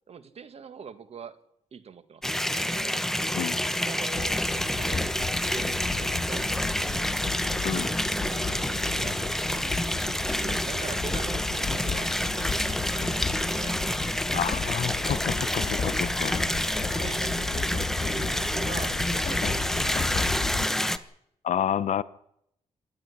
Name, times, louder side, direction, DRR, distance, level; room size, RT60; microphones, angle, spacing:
voice 1, 0.1-1.4 1.7-2.2 2.5-3.0 3.7-7.2 7.5-13.8 16.9-20.3, right 6 dB, 55° right, 1.8 m, -43 dB
sound 1, 2.2-21.0, left 1 dB, 5° left, 1.0 m, -28 dB
sound 2, 4.1-20.6, left 5 dB, 45° left, 3.4 m, -34 dB
voice 2, 14.3-16.4 20.8-21.0 21.4-22.0, left 9 dB, 75° left, 0.8 m, -30 dB
26.5 x 11.0 x 10.0 m
cardioid pair, 100°, 13 cm